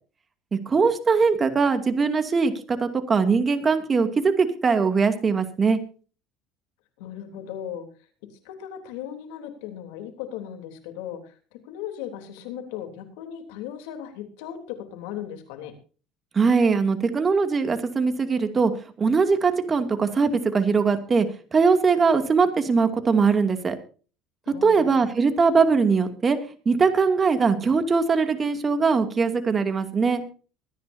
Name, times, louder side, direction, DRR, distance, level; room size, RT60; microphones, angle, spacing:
voice 1, 0.7-5.8 16.3-18.7 19.0-21.3 21.5-23.8 24.6-26.4 26.7-30.2, right 5 dB, 30° right, 7 dB, 2.4 m, -21 dB
voice 2, 7.0-7.9 8.2-15.7 24.5-25.2, left 10 dB, 90° left, 7 dB, 3.2 m, -37 dB
23.5 x 10.5 x 2.7 m, 0.37 s
supercardioid pair, 105°, 0 cm